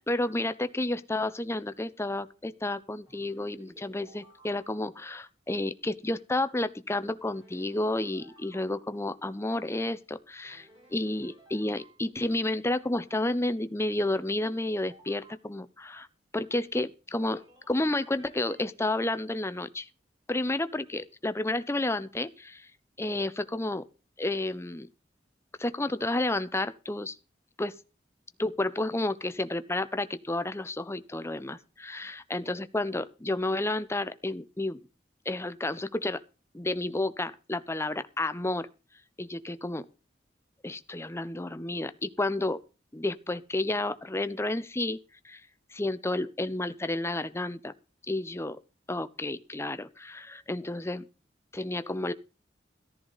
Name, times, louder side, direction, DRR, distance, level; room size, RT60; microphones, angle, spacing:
voice 1, 0.0-16.1 16.3-19.9 20.3-22.7 23.0-23.8 24.2-24.9 25.6-27.2 27.6-27.7 28.4-34.8 35.2-36.2 36.5-38.7 39.2-39.9 40.6-42.6 42.9-45.0 45.2-45.4 45.7-47.7 48.1-48.6 48.9-51.1 51.5-52.1, left 2 dB, 15° left, 0.7 m, -31 dB
sound 1, 3.1-5.0 7.2-8.7 10.4-12.0 13.9-15.4 17.2-18.6, right 1 dB, 30° right, 6.6 m, -57 dB
14.0 x 12.5 x 4.0 m
head